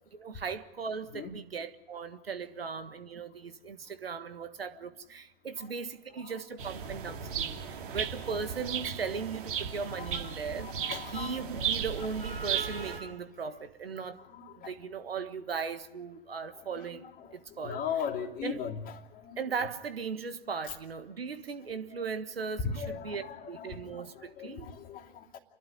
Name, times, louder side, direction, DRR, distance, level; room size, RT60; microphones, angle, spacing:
voice 1, 0.1-7.6 7.9-10.7 11.0-14.2 14.6-17.0 17.3-17.8 18.4-18.7 19.4-24.7, right 5 dB, 75° right, 1.6 m, -38 dB
sound 1, 6.6-13.0, right 8 dB, 60° right, 2.6 m, -35 dB
voice 2, 10.6-11.3 12.0-12.1 14.3-14.7 16.5-16.6 17.2-18.8 19.1-19.4 22.6-25.4, left 7 dB, 30° left, 2.7 m, -38 dB
29.5 x 11.5 x 10.0 m
figure-of-eight pair, 100°, 30 cm